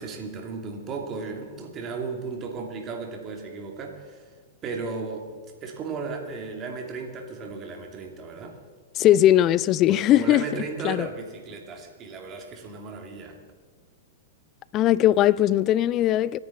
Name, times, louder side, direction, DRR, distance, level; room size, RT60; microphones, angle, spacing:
voice 1, 0.0-4.2 4.6-5.3 5.6-8.6 9.9-13.4, right 4 dB, 35° right, 2.8 m, -35 dB
voice 2, 9.0-10.4 10.8-11.1 14.7-16.4, left 13 dB, 40° left, 0.4 m, -19 dB
27.5 x 9.7 x 4.3 m
hypercardioid pair, 110°, 0 cm